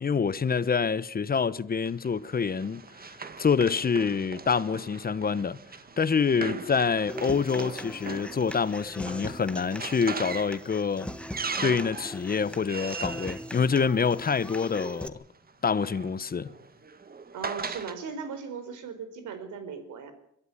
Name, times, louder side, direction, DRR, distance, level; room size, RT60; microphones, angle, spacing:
voice 1, 0.0-3.1 3.4-5.6 6.0-11.1 11.6-15.2 15.6-16.5, left 5 dB, 30° left, 1.0 m, -26 dB
Run, 1.9-14.5 15.5-18.0, right 5 dB, 30° right, 1.5 m, -40 dB
voice 2, 6.4-6.7 17.3-20.1, right 5 dB, 75° right, 4.4 m, -38 dB
Human voice / Acoustic guitar, 7.1-15.1, left 1 dB, 5° left, 1.4 m, -40 dB
23.0 x 13.0 x 9.8 m
cardioid pair, 90°, 30 cm